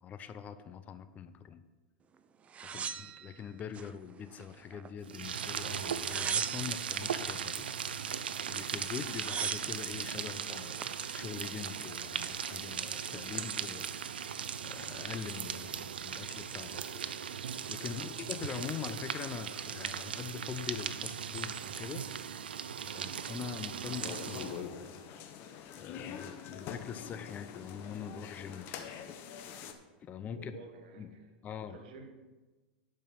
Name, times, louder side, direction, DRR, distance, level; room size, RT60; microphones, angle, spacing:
voice 1, 0.0-1.6 2.6-7.7 8.2-10.8 11.1-13.9 14.6-16.9 17.7-22.3 22.9-25.0 25.8-28.9 30.0-30.5 31.0-31.1 31.4-31.8, left 8 dB, 30° left, 11 dB, 0.6 m, -43 dB
sound 1, 2.5-3.9 4.3-5.1 5.8-6.9 8.5-8.6 8.8-9.8 10.5-11.0, right 7 dB, 25° right, 0.5 m, -38 dB
voice 2, 2.7-3.0 17.8-18.3 30.3-31.3 31.7-32.1, right 4 dB, 65° right, 5 dB, 1.5 m, -52 dB
sound 2, 5.0-24.7, right 8 dB, 90° right, 0.5 m, -38 dB
sound 3, 24.0-29.7, left 8 dB, 45° left, 1.2 m, -45 dB
11.0 x 5.3 x 6.0 m, 1.2 s
hypercardioid pair, 110°, 5 cm